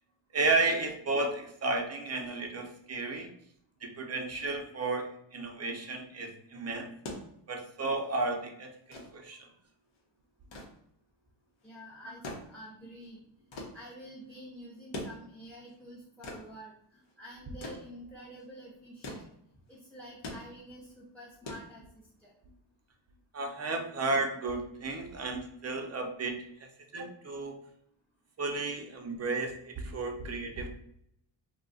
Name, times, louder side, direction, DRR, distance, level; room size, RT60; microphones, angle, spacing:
voice 1, 0.3-3.3 3.8-6.9 7.5-9.5 23.3-27.5 28.4-30.7, right 3 dB, 30° right, 3 dB, 0.6 m, -33 dB
voice 2, 2.5-2.9 11.6-13.2 13.7-19.3 19.7-21.8 22.2-22.3, equal, 5° left, -5 dB, 0.8 m, -49 dB
sound 1, 7.0-22.3 23.5-23.7, left 1 dB, 70° left, 1.0 m, -46 dB
2.4 x 2.3 x 3.9 m, 0.73 s
cardioid pair, 80°, 48 cm